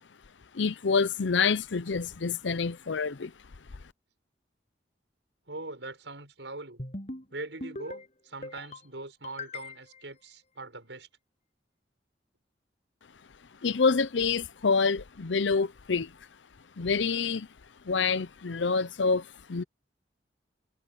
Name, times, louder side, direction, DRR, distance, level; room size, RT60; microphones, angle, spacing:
voice 1, 0.5-3.3 13.6-16.1 16.8-17.5 17.8-19.6, left 5 dB, 90° left, 0.7 m, -27 dB
voice 2, 5.5-6.8 7.3-11.1, right 2 dB, 80° right, 6.5 m, -42 dB
sound 1, 6.8-7.2 7.6-8.1 8.4-8.9 9.2-10.0, left 2 dB, 40° left, 7.4 m, -40 dB
head